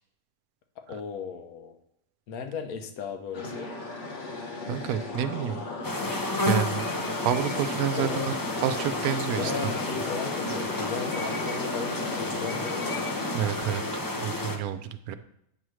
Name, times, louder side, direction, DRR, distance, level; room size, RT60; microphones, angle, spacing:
voice 1, 0.8-1.7 2.3-3.7 8.0-8.3 9.4-12.9, left 6 dB, 85° left, 5 dB, 1.3 m, -36 dB
sound 1, 3.3-13.3, left 2 dB, 55° left, 1.5 m, -36 dB
voice 2, 4.7-5.6 6.4-6.9 7.2-8.3 8.6-9.7 13.3-13.8 14.2-15.1, right 9 dB, 90° right, 11 dB, 1.1 m, -29 dB
sound 2, 5.8-14.6, left 2 dB, 35° left, 0.3 m, -31 dB
8.4 x 3.2 x 6.1 m, 0.76 s
omnidirectional pair, 1.5 m